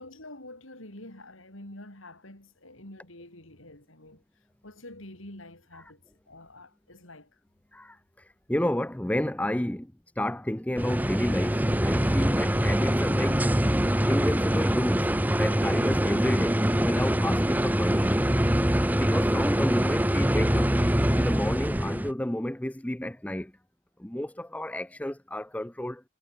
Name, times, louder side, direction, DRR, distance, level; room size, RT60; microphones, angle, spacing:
voice 1, 0.0-4.2 4.6-6.0 6.3-7.3, left 1 dB, 75° left, 6.7 m, -47 dB
voice 2, 8.5-13.5 14.1-18.2 18.9-20.7 21.1-23.5 24.0-26.0, left 1 dB, 5° left, 0.6 m, -31 dB
sound 1, 10.8-22.1, equal, 10° right, 1.2 m, -24 dB
head